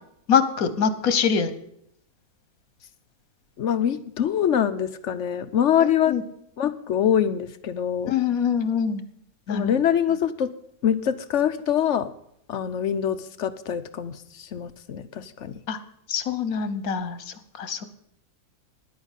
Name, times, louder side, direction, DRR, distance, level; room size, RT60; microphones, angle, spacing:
voice 1, 0.3-1.5 6.1-6.2 8.1-9.0 9.5-9.7 15.7-15.8 16.1-17.9, left 7 dB, 80° left, 12 dB, 1.5 m, -24 dB
voice 2, 3.6-6.2 6.6-8.1 9.5-10.5 10.8-12.1 12.5-15.6, left 9 dB, 60° left, 12 dB, 1.0 m, -24 dB
10.5 x 9.1 x 8.2 m, 0.72 s
omnidirectional pair, 1.5 m